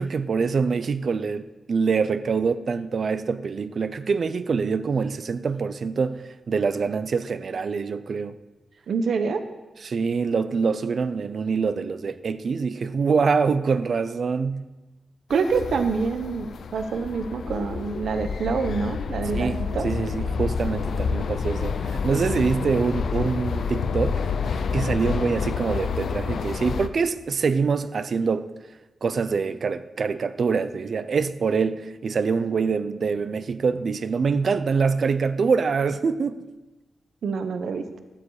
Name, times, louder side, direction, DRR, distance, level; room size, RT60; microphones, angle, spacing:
voice 1, 0.0-8.4 9.8-14.6 19.3-28.5 29.0-36.4, right 5 dB, 55° right, 0.7 m, -25 dB
voice 2, 8.9-9.4 15.3-19.9 37.2-37.8, right 5 dB, 80° right, 1.0 m, -26 dB
sound 1, 15.3-26.9, left 5 dB, 75° left, 0.7 m, -28 dB
14.5 x 12.5 x 4.9 m
wide cardioid pair, 120°, 0 cm